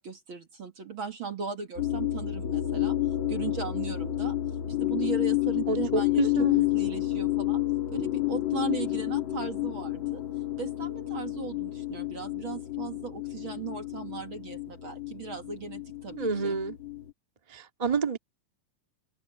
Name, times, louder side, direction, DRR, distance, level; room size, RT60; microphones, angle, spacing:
voice 1, 0.0-3.0 3.3-4.4 4.7-7.6 7.9-10.2 10.6-16.6, right 7 dB, 50° right, 1.7 m, -37 dB
sound 1, 1.8-17.1, left 15 dB, 40° left, 2.1 m, -30 dB
voice 2, 5.7-6.6 16.2-16.8 17.5-18.2, right 4 dB, 30° right, 0.6 m, -29 dB
open air
omnidirectional pair, 4.2 m